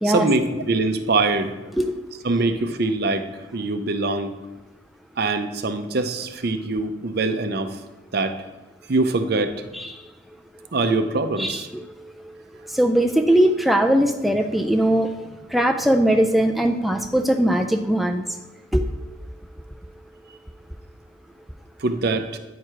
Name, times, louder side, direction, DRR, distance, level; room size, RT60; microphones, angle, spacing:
voice 1, 0.0-1.6 2.2-4.3 5.2-7.8 8.1-8.4 8.9-9.6 10.7-11.7 21.8-22.4, right 3 dB, 55° right, 9 dB, 0.6 m, -23 dB
voice 2, 11.4-11.8 12.7-15.2 15.5-18.2 18.7-18.8, right 1 dB, ahead, 5 dB, 0.3 m, -20 dB
9.0 x 4.6 x 4.9 m, 1.1 s
head